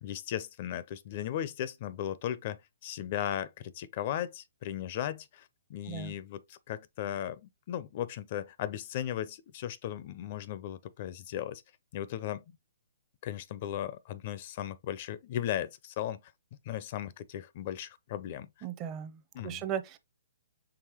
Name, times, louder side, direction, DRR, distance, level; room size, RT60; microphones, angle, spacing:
voice 1, 0.0-11.6 11.9-12.4 13.2-16.2 16.6-18.5 19.3-19.7, left 11 dB, 45° left, 0.4 m, -36 dB
voice 2, 18.6-20.0, right 9 dB, 25° right, 0.6 m, -37 dB
4.8 x 3.3 x 2.9 m
hypercardioid pair, 145°, 0 cm